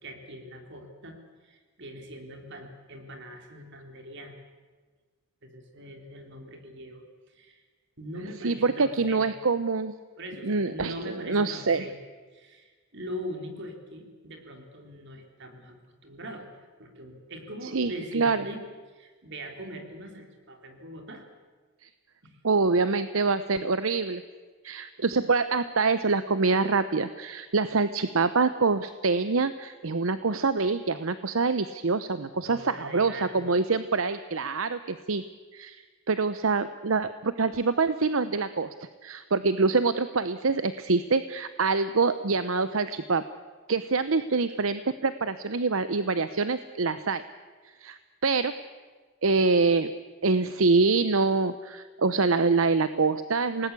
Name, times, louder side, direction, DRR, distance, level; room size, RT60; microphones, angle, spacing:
voice 1, 0.0-1.2 1.4-4.3 5.4-7.6 8.0-9.3 10.2-12.0 12.3-15.8 16.0-16.5 16.8-21.2 22.2-22.4 32.3-33.4, equal, 60° right, 4 dB, 3.9 m, -41 dB
voice 2, 8.4-9.9 10.4-11.8 17.7-18.4 21.8-21.9 22.4-24.2 24.6-35.2 35.5-35.8 36.1-43.2 43.7-47.2 47.8-48.5 49.2-49.9 50.2-53.7, right 4 dB, 80° right, 12 dB, 0.9 m, -25 dB
28.0 x 19.0 x 8.4 m, 1.4 s
head